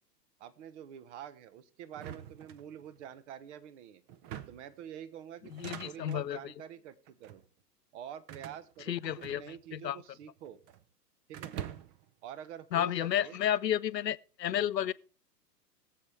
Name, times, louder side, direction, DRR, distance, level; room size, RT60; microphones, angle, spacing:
voice 1, 0.4-4.0 4.5-7.4 7.9-10.6 11.3-11.5 12.2-13.4 14.8-14.9, right 9 dB, 45° right, 1.2 m, -47 dB
sound 1, 1.9-3.1 4.1-4.8 5.4-6.3 7.1-7.4 8.3-9.8 10.1-10.8 11.3-12.1, right 10 dB, 25° right, 0.6 m, -45 dB
voice 2, 5.5-6.5 8.9-10.0 12.7-14.9, left 11 dB, 85° left, 0.6 m, -32 dB
21.5 x 7.7 x 3.4 m
figure-of-eight pair, 110°, 48 cm